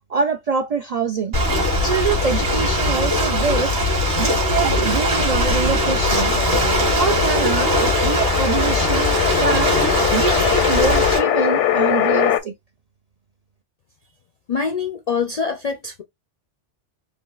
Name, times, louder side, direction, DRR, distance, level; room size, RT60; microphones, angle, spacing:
voice 1, 0.1-1.3 1.8-3.7 4.2-6.3 6.9-9.8 10.1-12.5, right 5 dB, 80° right, 0.3 m, -24 dB
Ocean, 1.3-11.2, equal, 65° right, 2.5 m, -20 dB
sound 1, 5.8-12.4, left 11 dB, 85° left, 0.9 m, -22 dB
voice 2, 14.5-16.0, left 5 dB, 65° left, 0.4 m, -24 dB
5.0 x 2.9 x 2.4 m
omnidirectional pair, 1.2 m